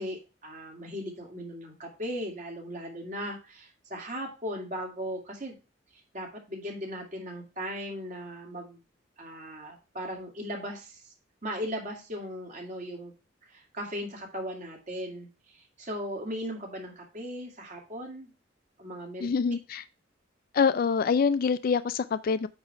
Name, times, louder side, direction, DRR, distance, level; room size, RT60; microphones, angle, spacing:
voice 1, 0.0-5.6 6.1-8.8 9.2-11.0 11.4-13.1 13.5-18.3 18.8-19.3, equal, 40° right, 0 dB, 2.3 m, -37 dB
voice 2, 19.2-19.8 20.5-22.5, left 5 dB, 50° left, 14 dB, 0.4 m, -25 dB
8.8 x 3.4 x 5.7 m, 0.30 s
head